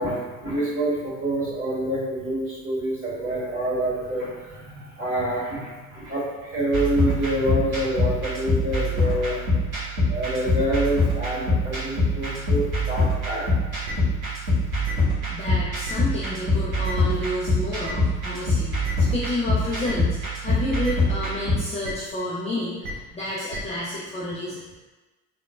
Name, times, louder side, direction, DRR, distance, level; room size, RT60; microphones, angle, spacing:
voice 1, 0.0-9.4 10.1-13.5, right 1 dB, 30° right, -8 dB, 1.5 m, -27 dB
sound 1, 6.7-21.6, left 1 dB, 85° right, 1.2 m, -24 dB
sound 2, 13.8-13.9 14.8-14.9 15.8-15.9 16.8-16.9 17.8-17.9 18.8-18.9 19.8-19.9 20.8-20.9 21.8-21.9 22.8-22.9 23.5-23.6, right 1 dB, 65° right, 0.7 m, -32 dB
voice 2, 15.3-24.6, left 1 dB, 15° left, -6 dB, 0.4 m, -30 dB
3.0 x 2.1 x 2.3 m, 1.2 s
hypercardioid pair, 70°, 41 cm